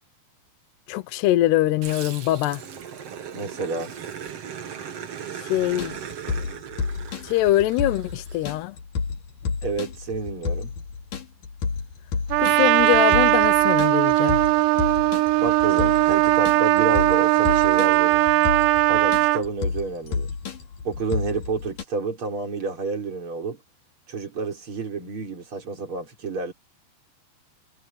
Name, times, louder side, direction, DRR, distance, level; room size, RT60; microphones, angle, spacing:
voice 1, 0.9-2.6 5.3-6.0 7.2-8.8 12.4-14.4, left 15 dB, 75° left, 2.9 m, -23 dB
Growling, 1.8-8.5, right 8 dB, 45° right, 2.2 m, -38 dB
voice 2, 3.3-3.9 9.6-10.7 15.4-18.3 18.9-20.3 20.8-23.6 24.1-26.5, right 4 dB, 30° right, 5.4 m, -29 dB
sound 1, 5.6-21.8, left 5 dB, 50° left, 4.4 m, -31 dB
Trumpet, 12.3-19.4, right 20 dB, 85° right, 2.7 m, -19 dB
omnidirectional pair, 5.0 m